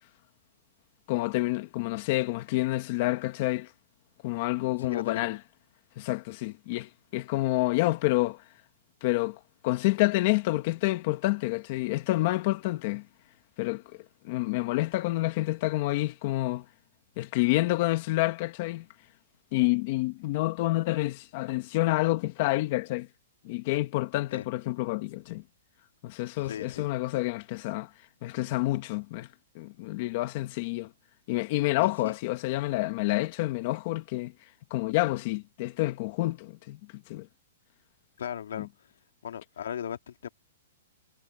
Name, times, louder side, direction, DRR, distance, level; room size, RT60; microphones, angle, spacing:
voice 1, 1.1-3.7 4.2-5.4 6.0-8.4 9.0-13.1 13.6-14.0 14.2-16.6 17.2-18.8 19.5-23.1 23.4-25.4 26.0-27.9 28.2-29.3 29.5-30.9 31.3-36.8 37.1-37.3 38.6-38.7, left 19 dB, 40° left, 1.3 m, -28 dB
voice 2, 4.6-5.3 24.3-24.4 26.4-26.8 31.8-32.1 38.2-38.7 39.2-40.3, left 9 dB, 80° left, 1.9 m, -37 dB
hypercardioid pair, 165°, 0 cm